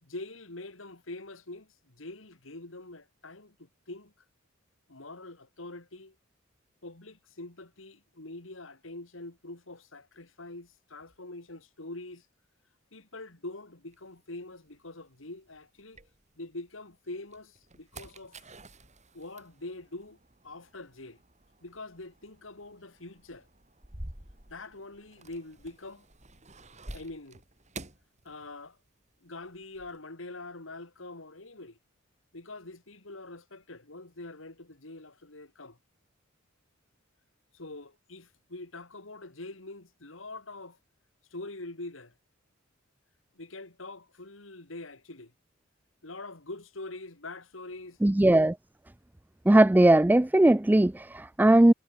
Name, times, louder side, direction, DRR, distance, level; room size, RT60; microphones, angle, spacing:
voice 1, 0.0-4.1 4.9-6.1 6.8-12.3 12.9-16.0 16.4-18.4 19.1-20.2 20.4-21.2 21.6-23.5 24.5-26.1 26.9-27.4 28.2-28.8 29.2-31.8 32.3-35.8 37.5-40.8 41.3-42.1 43.3-45.3 46.0-48.0, left 2 dB, 75° left, 2.7 m, -44 dB
sound 1, 13.9-16.7 17.1-28.9 29.2-30.0, right 2 dB, 35° right, 6.1 m, -49 dB
voice 2, 48.0-48.5 49.5-51.7, right 1 dB, 10° right, 0.4 m, -19 dB
head